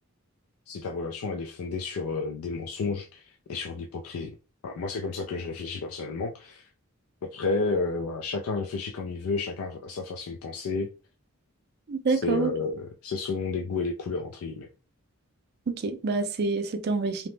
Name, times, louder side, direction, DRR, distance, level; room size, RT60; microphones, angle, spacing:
voice 1, 0.7-4.3 4.6-6.7 7.3-10.9 12.1-14.7, left 4 dB, 85° left, 0.4 m, -31 dB
voice 2, 11.9-12.5 15.7-17.3, right 4 dB, 50° right, 0.4 m, -27 dB
2.8 x 2.0 x 3.2 m
head